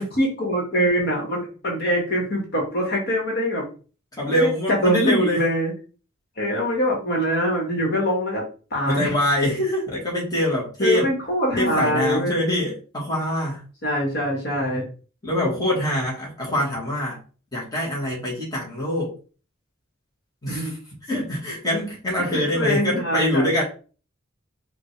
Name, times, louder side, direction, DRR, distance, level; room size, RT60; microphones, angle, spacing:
voice 1, 0.0-3.7 4.3-5.7 6.4-8.4 8.7-9.1 10.8-12.5 13.8-14.8 20.5-20.7 22.3-23.4, equal, 50° left, 1.7 m, -23 dB
voice 2, 4.1-5.4 8.9-11.1 11.6-13.6 15.2-17.2 17.5-19.1 20.4-20.8 21.1-23.6, left 1 dB, 20° left, 1.6 m, -24 dB
5.2 x 2.7 x 3.3 m
head